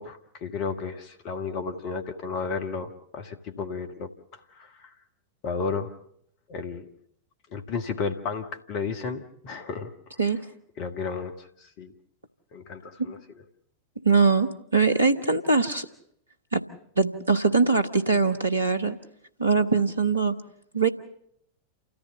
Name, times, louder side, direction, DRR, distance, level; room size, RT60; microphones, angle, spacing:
voice 1, 0.0-4.9 5.4-5.9 6.5-6.8 7.5-9.9 10.8-11.9 12.5-13.2, left 5 dB, 45° left, 5 dB, 1.4 m, -33 dB
voice 2, 14.0-15.9 16.5-16.6 17.0-19.0 19.4-20.3 20.7-20.9, right 4 dB, 80° right, 10 dB, 1.2 m, -22 dB
28.5 x 14.5 x 6.8 m, 0.70 s
figure-of-eight pair, 90°, 0 cm